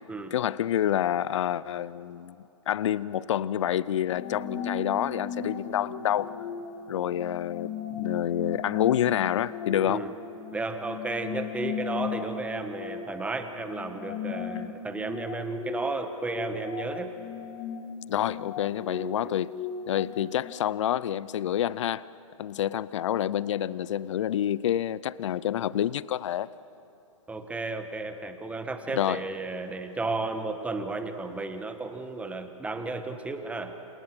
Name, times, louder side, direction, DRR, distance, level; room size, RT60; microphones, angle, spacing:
voice 1, 0.3-2.4 2.7-6.3 6.9-10.1 18.1-19.6 19.9-22.1 22.4-26.5 28.9-29.2, left 11 dB, 60° left, 19 dB, 0.6 m, -28 dB
sound 1, 4.1-20.5, left 6 dB, 45° left, 2.4 m, -37 dB
voice 2, 10.5-17.1 19.2-19.3 27.3-33.7, right 3 dB, 10° right, 7 dB, 1.6 m, -33 dB
28.5 x 28.0 x 6.2 m, 2.9 s
hypercardioid pair, 125°, 17 cm